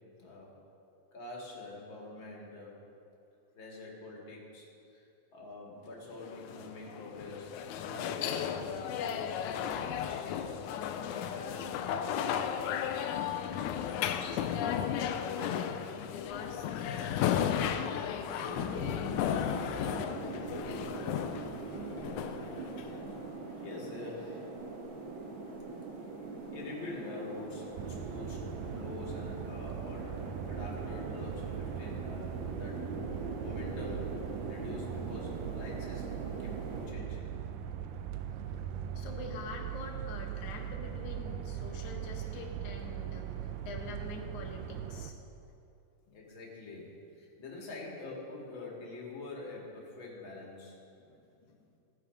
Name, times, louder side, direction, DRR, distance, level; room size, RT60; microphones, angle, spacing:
voice 1, 0.2-0.5 1.1-2.8 3.5-10.4 11.1-12.4 22.8-23.1 23.6-24.5 26.0-26.1 26.5-32.8 33.4-34.2 34.4-36.1 36.4-36.6 36.9-37.3 46.0-50.7, left 3 dB, 40° left, -3 dB, 2.5 m, -45 dB
sound 1, 6.2-23.3, left 9 dB, 80° left, 1.8 m, -34 dB
voice 2, 13.9-18.6 39.0-45.1 51.1-51.7, left 4 dB, 65° left, 1 dB, 2.5 m, -45 dB
sound 2, 18.5-36.9, right 3 dB, 55° right, 1.4 m, -42 dB
sound 3, 27.8-45.1, right 9 dB, 80° right, 2.1 m, -40 dB
16.5 x 8.6 x 5.1 m, 2.7 s
omnidirectional pair, 4.0 m